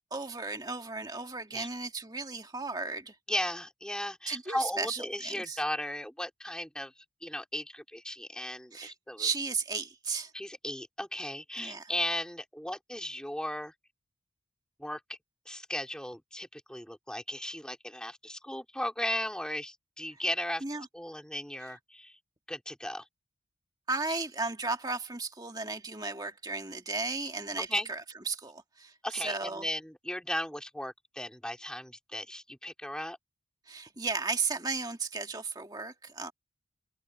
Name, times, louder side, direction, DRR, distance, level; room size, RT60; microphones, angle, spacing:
voice 1, 0.1-3.2 4.3-5.6 8.7-10.3 11.6-11.9 20.6-20.9 23.9-29.7 33.7-36.3, right 4 dB, 20° right, 1.9 m, -35 dB
voice 2, 3.3-9.3 10.3-13.7 14.8-15.0 15.5-20.6 20.9-22.2 22.5-23.1 27.7-27.9 29.0-33.2, left 1 dB, 5° left, 4.0 m, -36 dB
head